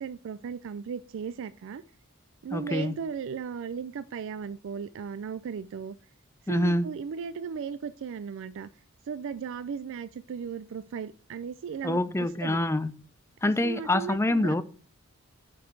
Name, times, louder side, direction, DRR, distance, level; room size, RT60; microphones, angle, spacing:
voice 1, 0.0-1.8 2.4-6.0 6.4-8.7 9.0-12.6 13.6-14.6, right 6 dB, 60° right, 0.4 m, -36 dB
voice 2, 2.5-3.0 6.5-6.9 11.8-12.9 13.4-14.6, left 1 dB, 10° left, 0.5 m, -26 dB
7.6 x 5.3 x 4.5 m
head